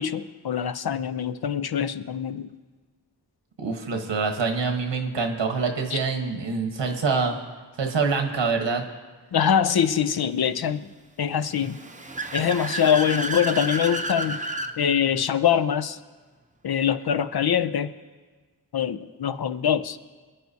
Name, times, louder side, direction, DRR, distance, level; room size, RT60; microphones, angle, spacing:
voice 1, 0.0-2.5 5.9-6.0 9.3-10.9 11.2-11.8 12.3-14.4 14.8-16.0 16.6-17.9 18.7-20.0, left 8 dB, 60° left, 11 dB, 0.6 m, -24 dB
voice 2, 3.6-7.4 7.8-8.8, right 4 dB, 90° right, 4 dB, 1.3 m, -25 dB
Car / Accelerating revving vroom, 11.5-14.7, right 2 dB, 20° right, 0.7 m, -31 dB
25.5 x 9.4 x 2.8 m, 1.4 s
wide cardioid pair, 70°, 42 cm